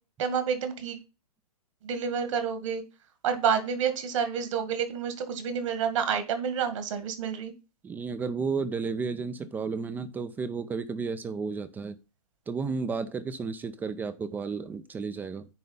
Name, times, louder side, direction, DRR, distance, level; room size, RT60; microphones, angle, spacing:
voice 1, 0.2-1.0 1.8-2.8 3.2-7.5, right 7 dB, 55° right, 9 dB, 1.8 m, -29 dB
voice 2, 7.8-12.0 12.5-15.5, right 5 dB, 10° right, 12 dB, 0.4 m, -32 dB
9.6 x 3.3 x 5.4 m, 0.30 s
figure-of-eight pair, 120°, 20 cm